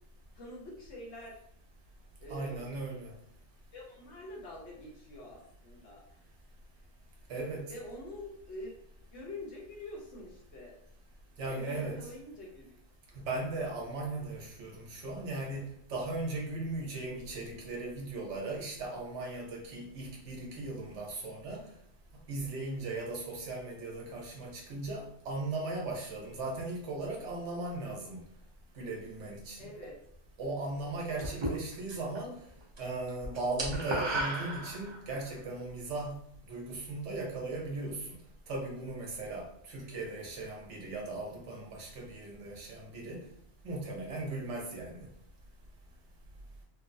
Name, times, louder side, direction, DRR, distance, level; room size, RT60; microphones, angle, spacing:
voice 1, 0.3-1.4 2.2-2.7 3.7-6.0 7.6-8.8 9.1-10.8 11.4-12.7 29.6-30.0 39.8-40.0, left 1 dB, 70° left, -2 dB, 1.0 m, -46 dB
voice 2, 2.3-3.1 7.3-7.7 11.4-12.0 13.1-21.7 22.3-28.2 28.8-29.7 30.4-32.4 32.8-36.2 36.5-38.0 38.5-43.2 43.6-45.1, right 2 dB, 75° right, -1 dB, 1.0 m, -38 dB
sound 1, 31.2-32.2 32.5-32.8 33.1-35.2, right 1 dB, 35° right, 0.4 m, -34 dB
3.0 x 2.0 x 2.5 m, 0.68 s
omnidirectional pair, 1.2 m